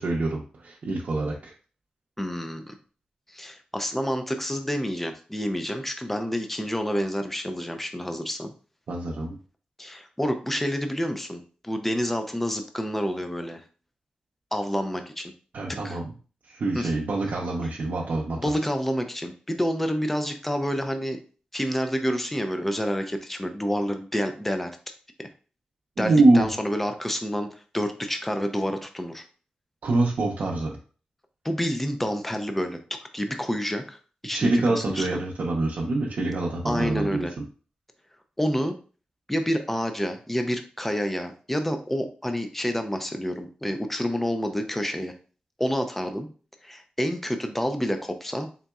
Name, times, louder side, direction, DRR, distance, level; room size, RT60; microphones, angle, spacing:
voice 1, 0.0-1.5 8.9-9.4 15.5-16.1 16.5-18.5 26.0-26.5 29.8-30.8 34.3-37.4, right 2 dB, 70° right, -2 dB, 0.6 m, -25 dB
voice 2, 2.2-2.7 3.3-8.5 9.8-13.6 14.5-15.3 15.8-16.0 16.7-16.9 18.4-21.2 21.5-24.7 25.2-25.3 26.0-29.2 31.4-32.8 33.1-35.1 36.6-37.3 38.4-38.7 39.3-45.1 45.6-46.3 46.6-48.5, equal, 10° left, 6 dB, 0.5 m, -28 dB
4.0 x 3.7 x 2.3 m, 0.39 s
wide cardioid pair, 105°, 3 cm